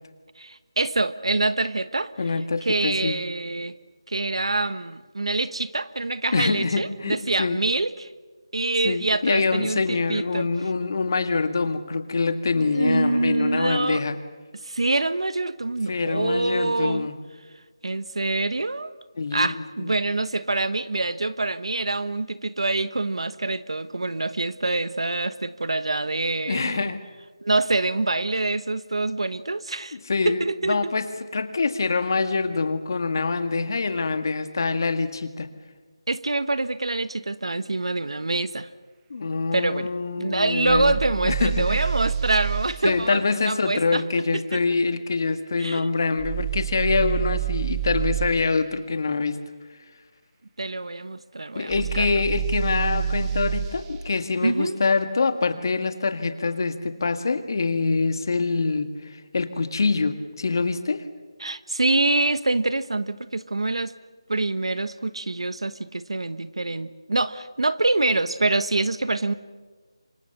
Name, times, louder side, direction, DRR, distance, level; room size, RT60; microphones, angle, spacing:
voice 1, 0.4-2.1 2.6-3.8 4.1-8.1 8.5-10.5 12.7-14.0 14.6-17.1 17.8-18.9 19.3-26.9 27.4-30.0 30.2-30.9 36.1-38.7 39.5-39.9 40.2-44.3 44.5-44.6 45.6-45.9 50.6-52.2 54.4-54.8 61.4-63.9 64.3-69.4, right 2 dB, 80° right, 14 dB, 1.2 m, -25 dB
voice 2, 2.2-3.2 6.3-7.6 8.8-14.2 15.9-17.2 19.2-20.0 26.5-27.0 29.9-31.1 31.3-35.5 39.1-41.0 41.2-41.9 42.8-49.4 51.6-61.0, left 4 dB, 45° left, 9 dB, 1.8 m, -25 dB
sound 1, 40.7-42.7 46.2-48.3 51.7-53.8, right 9 dB, 10° right, 1.0 m, -27 dB
29.0 x 25.0 x 6.8 m, 1.4 s
figure-of-eight pair, 170°, 3 cm